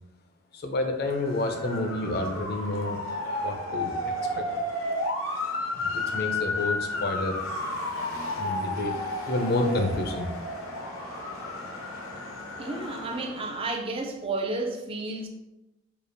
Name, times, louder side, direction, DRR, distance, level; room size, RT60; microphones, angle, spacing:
voice 1, 0.5-3.0 3.4-4.4 5.7-7.4 8.4-9.0 9.3-10.3, left 2 dB, 50° left, 5 dB, 0.5 m, -29 dB
Motor vehicle (road) / Siren, 1.0-13.7, left 2 dB, 85° left, 0.7 m, -32 dB
voice 2, 12.6-15.3, right 2 dB, 25° right, 2 dB, 0.4 m, -32 dB
4.9 x 2.4 x 2.6 m, 0.96 s
head